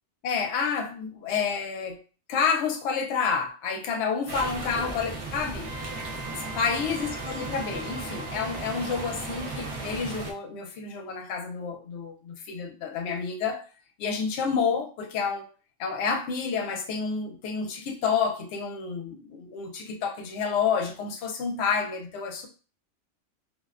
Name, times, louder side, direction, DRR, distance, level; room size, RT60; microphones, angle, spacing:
voice 1, 0.2-2.0 2.3-5.7 6.2-13.6 14.0-15.5 15.8-22.5, left 6 dB, 70° left, 3 dB, 0.8 m, -29 dB
sound 1, 4.3-10.3, right 3 dB, 55° right, 0.4 m, -36 dB
Wind instrument woodwind instrument, 5.7-9.9, right 3 dB, 70° right, 0.8 m, -43 dB
2.5 x 2.1 x 2.3 m, 0.37 s
omnidirectional pair, 1.3 m